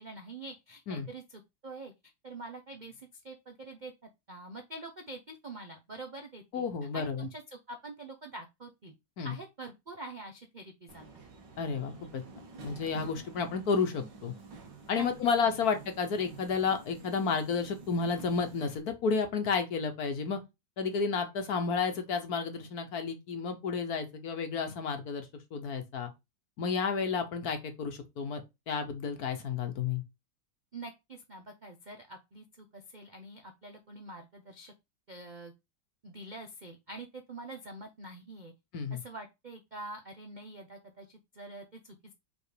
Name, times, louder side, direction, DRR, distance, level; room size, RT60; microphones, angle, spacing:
voice 1, 0.0-1.9 2.2-3.9 4.3-6.7 6.9-8.9 9.2-11.1 14.9-15.1 30.7-34.7 35.1-35.5 36.0-38.5 38.9-42.1, right 2 dB, 50° right, 0.5 m, -45 dB
voice 2, 6.5-7.3 9.2-9.4 11.6-12.2 12.6-14.3 14.9-20.4 20.8-25.3 25.5-26.1 26.6-28.4 28.7-30.0 38.7-39.0, left 5 dB, 60° left, 1.4 m, -31 dB
Subway metro underground, 10.9-18.8, right 4 dB, 75° right, 1.8 m, -50 dB
5.2 x 3.8 x 4.9 m
omnidirectional pair, 2.0 m